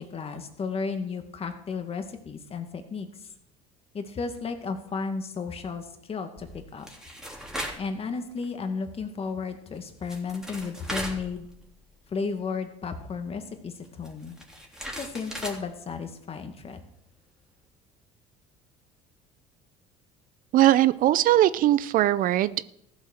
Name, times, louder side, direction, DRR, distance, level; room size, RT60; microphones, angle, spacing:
voice 1, 0.0-3.3 3.9-6.9 7.8-11.5 12.1-14.4 15.0-16.8, left 4 dB, 35° left, 6 dB, 2.1 m, -33 dB
sound 1, 6.4-7.9 8.3-8.4 9.7-9.8 10.0-11.9 12.2-12.3 13.8-15.6, equal, 5° right, 3.3 m, -38 dB
voice 2, 20.5-22.7, right 14 dB, 55° right, 17 dB, 0.5 m, -20 dB
14.5 x 7.3 x 6.6 m, 0.76 s
supercardioid pair, 90°, 17 cm